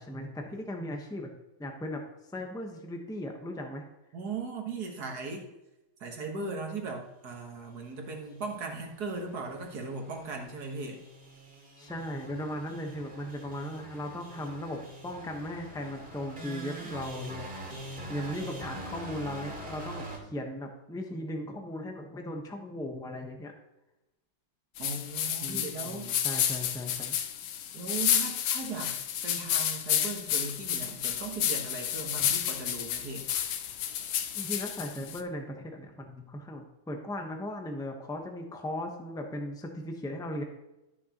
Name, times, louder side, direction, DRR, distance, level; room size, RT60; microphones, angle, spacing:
voice 1, 0.0-1.3 1.6-2.0 2.3-3.8 11.8-17.4 17.8-23.5 25.4-27.2 34.3-40.4, left 1 dB, 5° left, 2 dB, 0.6 m, -37 dB
voice 2, 4.1-5.4 6.0-11.0 24.8-26.1 27.7-33.3, right 4 dB, 55° right, 2 dB, 1.9 m, -38 dB
sound 1, 7.8-20.2, right 1 dB, 30° right, 2.7 m, -44 dB
sound 2, 24.8-35.2, left 10 dB, 75° left, 1.4 m, -31 dB
12.5 x 7.0 x 3.0 m, 0.97 s
omnidirectional pair, 2.2 m